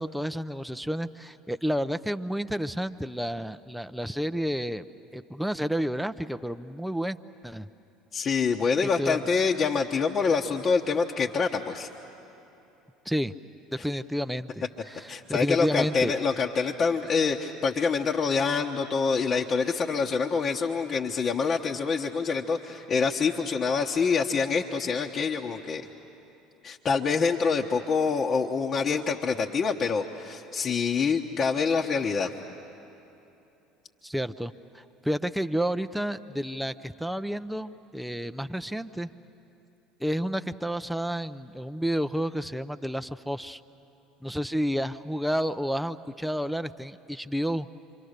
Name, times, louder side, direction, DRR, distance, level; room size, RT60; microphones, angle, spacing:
voice 1, 0.0-4.9 5.1-7.2 7.4-7.7 8.8-9.2 13.1-13.3 13.7-16.1 34.0-39.1 40.0-43.6 44.2-47.7, equal, ahead, 9 dB, 0.6 m, -30 dB
voice 2, 8.1-11.9 15.1-25.9 26.6-32.3, left 5 dB, 35° left, 0 dB, 1.1 m, -26 dB
27.0 x 25.0 x 6.6 m, 2.8 s
figure-of-eight pair, 65°, 0 cm